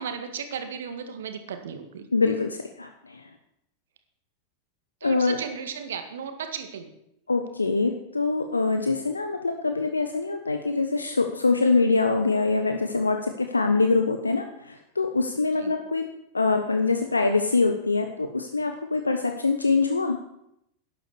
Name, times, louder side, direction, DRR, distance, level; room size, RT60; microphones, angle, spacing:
voice 1, 0.0-2.1 5.0-6.9 15.6-15.7, right 7 dB, 60° right, 7 dB, 1.8 m, -35 dB
voice 2, 2.1-3.3 5.0-5.4 7.3-16.0 16.3-20.2, left 3 dB, 80° left, 6 dB, 1.0 m, -24 dB
12.0 x 10.0 x 6.9 m, 0.77 s
figure-of-eight pair, 90°, 0 cm